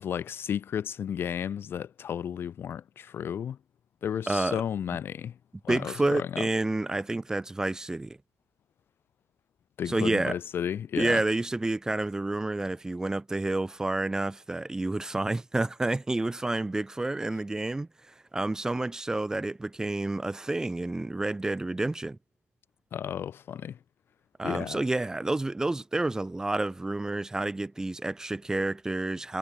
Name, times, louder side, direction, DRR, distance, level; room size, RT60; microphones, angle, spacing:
voice 1, 0.0-3.6 4.0-5.4 5.6-6.4 9.8-11.2 22.9-23.8 24.4-24.8, left 8 dB, 45° left, 1.4 m, -33 dB
voice 2, 4.3-4.6 5.7-8.2 9.9-10.4 11.0-22.2 24.4-29.4, right 2 dB, 10° right, 2.0 m, -29 dB
cardioid pair, 120°, 5 cm